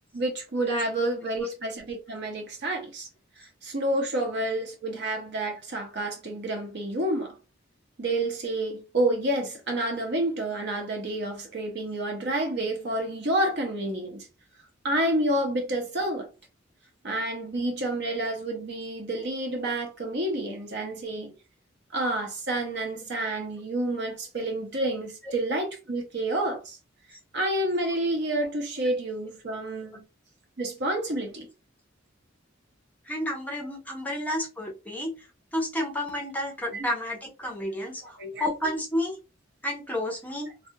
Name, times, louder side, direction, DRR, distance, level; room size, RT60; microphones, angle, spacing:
voice 1, 0.1-3.1 3.4-7.3 8.0-14.3 14.8-16.3 17.0-21.3 21.9-26.8 27.3-30.0 30.6-31.5 36.7-36.9 38.0-38.4, right 1 dB, 60° right, 0.7 m, -29 dB
voice 2, 33.0-35.1 35.5-39.2 39.6-40.5, left 1 dB, 10° left, 0.5 m, -31 dB
2.3 x 2.0 x 2.7 m
head